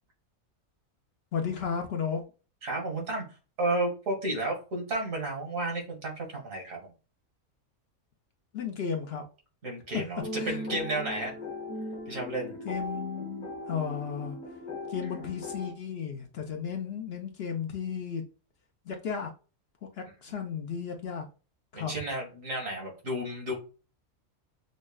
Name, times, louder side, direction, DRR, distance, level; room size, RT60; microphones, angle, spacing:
voice 1, 1.3-2.2 8.5-9.2 9.9-10.0 10.4-10.6 12.7-14.4 14.9-18.2 18.9-19.3 20.0-21.3 21.7-21.9, left 7 dB, 60° left, 3 dB, 0.8 m, -34 dB
voice 2, 2.6-3.2 3.6-6.9 9.6-11.3 12.1-12.6 21.7-23.5, right 2 dB, 80° right, 0 dB, 1.8 m, -32 dB
sound 1, 10.2-15.7, left 1 dB, 40° left, 1.1 m, -38 dB
6.2 x 2.1 x 2.3 m, 0.34 s
omnidirectional pair, 1.4 m